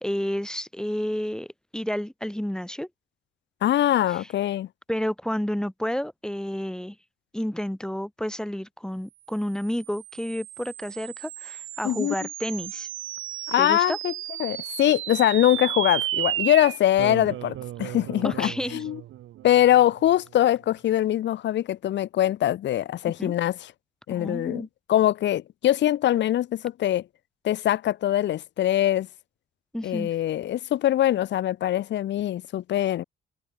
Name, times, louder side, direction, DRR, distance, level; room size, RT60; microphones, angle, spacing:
voice 1, 0.0-1.5 1.7-2.9 4.1-4.3 4.9-6.9 7.3-12.9 13.6-14.0 18.2-18.8 23.0-23.3 24.1-24.7 29.7-30.1, equal, 5° left, 3.0 m, -30 dB
voice 2, 3.6-4.7 11.8-12.1 13.5-14.1 14.4-19.0 19.4-23.7 24.1-27.0 27.4-29.1 29.8-33.0, left 12 dB, 65° left, 0.8 m, -23 dB
sound 1, 9.5-20.2, right 13 dB, 80° right, 5.1 m, -34 dB
cardioid pair, 90°, 20 cm